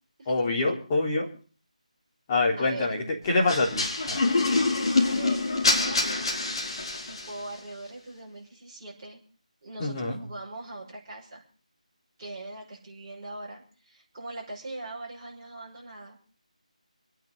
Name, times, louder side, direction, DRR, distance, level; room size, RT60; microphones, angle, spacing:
voice 1, 0.3-1.3 2.3-4.2 9.8-10.2, left 2 dB, 20° left, -4 dB, 3.9 m, -26 dB
voice 2, 2.6-2.9 5.0-5.4 5.7-6.5 7.0-9.2 9.6-11.4 12.2-16.2, right 2 dB, 25° right, -4 dB, 6.2 m, -41 dB
sound 1, 3.5-7.4, left 3 dB, 40° left, 3.1 m, -25 dB
27.5 x 9.4 x 5.5 m, 0.41 s
figure-of-eight pair, 160°, 4 cm